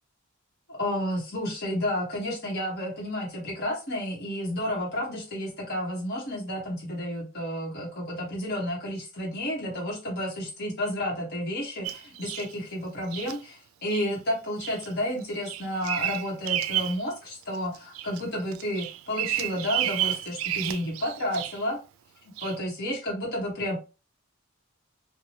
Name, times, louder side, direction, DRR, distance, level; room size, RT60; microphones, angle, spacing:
voice 1, 0.7-21.8 22.4-23.8, left 1 dB, 50° left, -3 dB, 1.1 m, -31 dB
Bird vocalization bird call bird song, 11.8-12.5 13.1-13.4 13.9-14.1 14.6-14.9 15.2-17.0 17.4-18.2 18.5-21.7 22.4-22.6, right 12 dB, 80° right, 0.3 m, -31 dB
2.7 x 2.2 x 3.0 m, 0.31 s
head